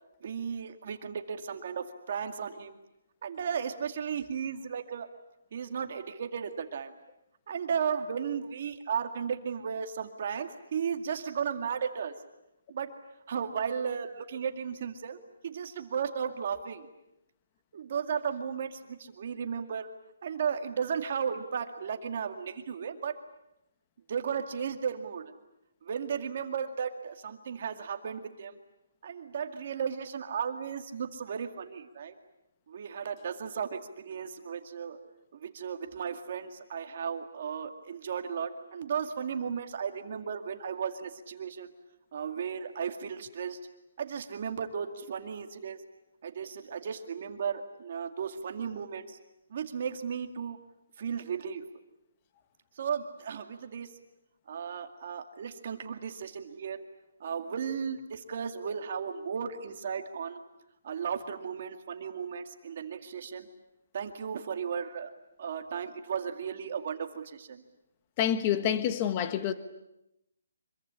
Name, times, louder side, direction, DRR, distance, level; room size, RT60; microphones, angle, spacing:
voice 1, 0.2-2.8 3.2-5.1 5.5-6.9 7.5-12.1 12.7-12.9 13.3-15.2 15.4-16.9 17.7-19.9 20.2-23.2 24.1-25.2 25.8-28.6 29.0-32.1 32.7-35.0 35.3-41.7 42.1-43.6 44.0-45.8 46.2-49.2 49.5-50.6 51.0-51.6 52.8-53.9 54.5-56.8 57.2-60.4 60.8-63.5 63.9-65.1 65.4-67.6, right 7 dB, 35° right, 2.1 m, -35 dB
voice 2, 68.2-69.5, left 10 dB, 20° left, 1.2 m, -27 dB
26.0 x 23.0 x 10.0 m
hypercardioid pair, 180°, 0 cm